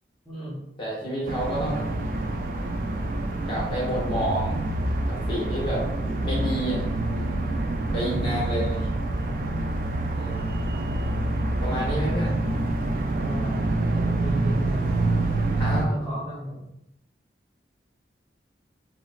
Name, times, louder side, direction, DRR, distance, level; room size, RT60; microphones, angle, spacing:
voice 1, 0.3-0.6 7.9-8.7 13.2-15.2 15.8-16.7, left 1 dB, ahead, -10 dB, 0.7 m, -35 dB
voice 2, 0.8-1.9 3.5-4.6 5.1-5.8 6.2-6.8 7.9-8.9 10.1-10.4 11.6-12.4 15.6-16.1, equal, 30° left, -5 dB, 1.0 m, -29 dB
sound 1, 1.3-15.9, right 2 dB, 50° right, 0.3 m, -26 dB
4.0 x 2.0 x 2.4 m, 0.84 s
head